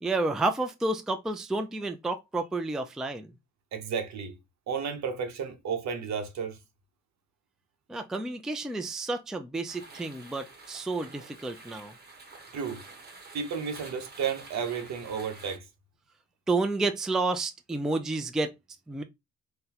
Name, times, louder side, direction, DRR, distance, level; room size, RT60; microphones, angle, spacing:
voice 1, 0.0-3.3 7.9-11.9 16.5-18.5 18.9-19.0, right 2 dB, ahead, 0.3 m, -30 dB
voice 2, 3.7-4.4 4.7-6.6 12.5-12.8 13.3-15.7, right 6 dB, 65° right, 0.8 m, -32 dB
sound 1, 9.7-15.6, right 3 dB, 35° right, 1.0 m, -49 dB
3.8 x 2.2 x 2.8 m
cardioid pair, 90°, 30 cm